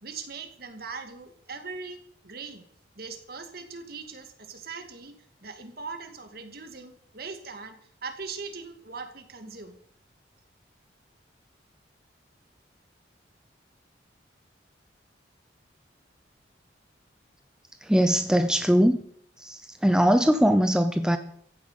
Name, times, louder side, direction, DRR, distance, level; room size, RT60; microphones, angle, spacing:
voice 1, 0.0-2.7 3.0-5.1 5.4-9.8, right 4 dB, 55° right, 6 dB, 2.4 m, -40 dB
voice 2, 17.8-19.0 19.4-21.2, equal, 5° right, 8 dB, 0.7 m, -21 dB
15.0 x 9.8 x 8.2 m, 0.66 s
head